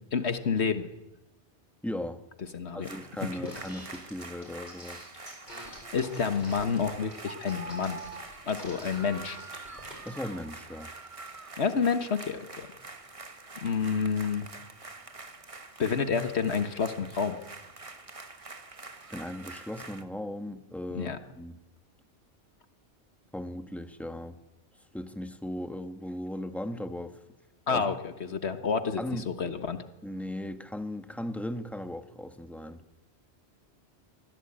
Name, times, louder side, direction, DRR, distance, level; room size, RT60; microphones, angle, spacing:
voice 1, 0.1-0.9 2.5-2.9 5.7-8.0 8.5-9.4 11.6-12.7 13.6-14.5 15.8-17.4 20.9-21.2 27.7-29.8, left 5 dB, 70° left, 10 dB, 1.6 m, -29 dB
voice 2, 1.8-2.2 2.7-5.0 10.0-10.9 19.1-21.6 23.3-24.4 24.9-27.2 27.7-27.9 29.0-29.3 30.0-32.8, left 1 dB, ahead, 9 dB, 1.3 m, -37 dB
sound 1, 2.8-20.0, right 3 dB, 30° right, 1.3 m, -45 dB
sound 2, 3.5-10.1, equal, 40° left, 8.0 m, -47 dB
24.0 x 16.0 x 8.9 m, 0.98 s
omnidirectional pair, 1.2 m